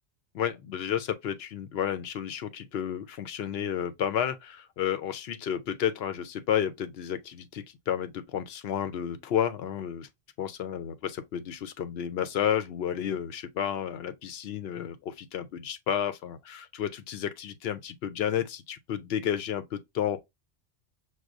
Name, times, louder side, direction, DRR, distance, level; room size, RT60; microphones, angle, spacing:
voice 1, 0.3-10.1 10.4-20.2, left 9 dB, 70° left, 0.8 m, -31 dB
6.1 x 2.2 x 2.4 m
omnidirectional pair, 1.2 m